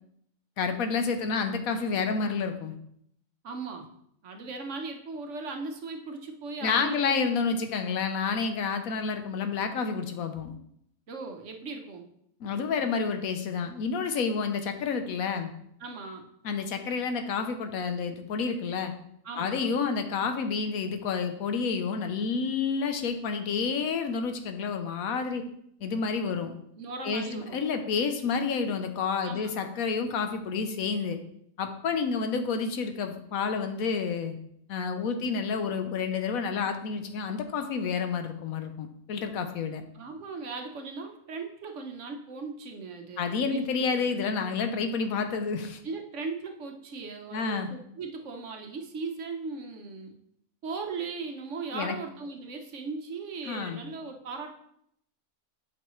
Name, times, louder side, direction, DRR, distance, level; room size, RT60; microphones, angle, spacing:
voice 1, 0.6-2.7 6.6-10.5 12.4-15.5 16.4-18.9 19.4-25.4 25.8-26.5 27.0-31.2 31.6-34.3 34.7-39.8 43.2-45.8 47.3-47.7 51.7-52.0 53.5-53.8, left 5 dB, 80° left, 7 dB, 1.2 m, -29 dB
voice 2, 3.4-3.9 4.2-7.4 11.1-12.1 15.8-16.3 19.2-19.7 25.1-25.2 26.8-27.6 29.2-29.5 39.9-44.5 45.8-50.1 50.6-54.5, right 4 dB, 60° right, 4 dB, 1.1 m, -38 dB
8.5 x 5.5 x 3.1 m, 0.72 s
omnidirectional pair, 1.5 m